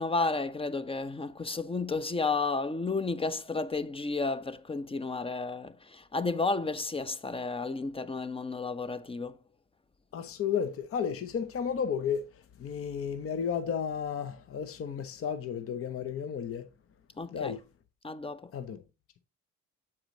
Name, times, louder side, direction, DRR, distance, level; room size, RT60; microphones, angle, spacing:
voice 1, 0.0-9.4 17.2-17.5 18.0-18.5, left 3 dB, 20° left, 0.6 m, -32 dB
voice 2, 10.1-16.7 17.3-17.6 18.5-18.8, left 7 dB, 50° left, 0.8 m, -33 dB
7.3 x 4.9 x 3.8 m
cardioid pair, 90°, 30 cm